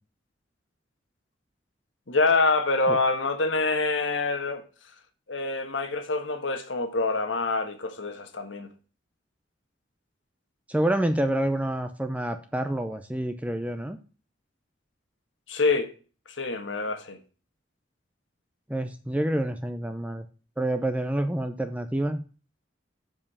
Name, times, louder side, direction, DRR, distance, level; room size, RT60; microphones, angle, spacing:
voice 1, 2.1-4.6 5.3-8.7 15.5-15.9 16.3-17.2, left 3 dB, 85° left, 1.5 m, -26 dB
voice 2, 10.7-14.0 18.7-20.3 20.6-22.2, right 1 dB, 10° right, 0.6 m, -28 dB
7.2 x 5.5 x 5.4 m
head